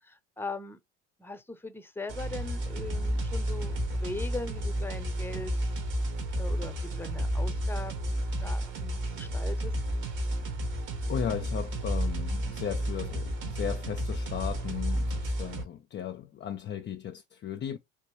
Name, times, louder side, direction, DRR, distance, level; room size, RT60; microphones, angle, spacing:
voice 1, 0.0-0.8 1.2-5.5 6.4-9.8, left 3 dB, 5° left, 0.8 m, -40 dB
sound 1, 2.1-15.6, right 1 dB, 60° right, 1.6 m, -31 dB
voice 2, 11.1-17.8, left 9 dB, 35° left, 0.5 m, -36 dB
3.4 x 3.0 x 3.0 m
hypercardioid pair, 65°, 34 cm